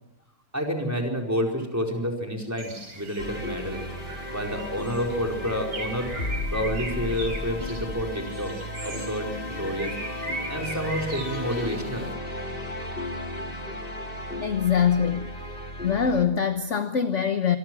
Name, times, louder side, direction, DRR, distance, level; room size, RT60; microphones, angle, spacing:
voice 1, 0.5-3.8 4.3-6.1 6.5-8.6 8.8-9.9 10.5-12.4 12.9-13.0, equal, 5° right, 1 dB, 4.5 m, -29 dB
Bird, 2.6-12.1, right 2 dB, 70° right, 5.4 m, -39 dB
sound 1, 3.2-16.3, left 1 dB, 25° left, 2.4 m, -34 dB
voice 2, 14.4-15.3 15.8-17.6, left 7 dB, 40° left, 8 dB, 1.2 m, -23 dB
26.0 x 23.0 x 6.2 m, 0.80 s
omnidirectional pair, 2.3 m